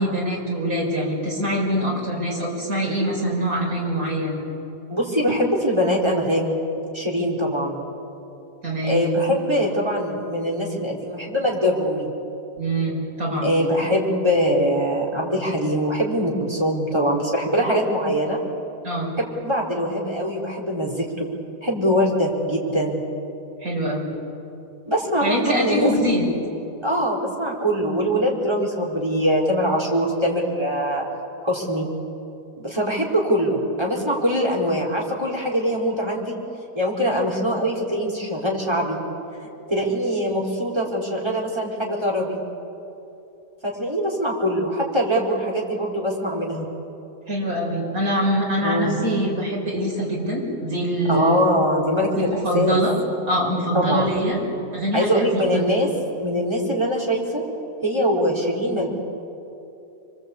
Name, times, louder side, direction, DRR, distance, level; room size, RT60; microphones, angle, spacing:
voice 1, 0.0-4.4 5.3-5.4 8.6-9.0 12.6-13.5 18.8-19.1 23.6-24.1 25.2-26.3 47.3-51.4 52.2-52.9 53.3-54.4 54.7-55.6, equal, 55° right, -2 dB, 6.3 m, -24 dB
voice 2, 4.9-6.6 6.9-7.8 8.9-12.1 13.4-18.4 19.4-21.3 21.6-23.0 24.9-25.9 26.8-31.1 31.4-31.9 32.6-36.3 36.7-39.0 39.7-42.4 43.6-46.7 48.6-49.0 51.0-52.8 53.7-54.1 54.9-55.9 56.2-57.4 57.8-58.9, equal, 15° right, -2 dB, 4.4 m, -22 dB
27.5 x 23.5 x 8.5 m, 2.8 s
omnidirectional pair, 1.8 m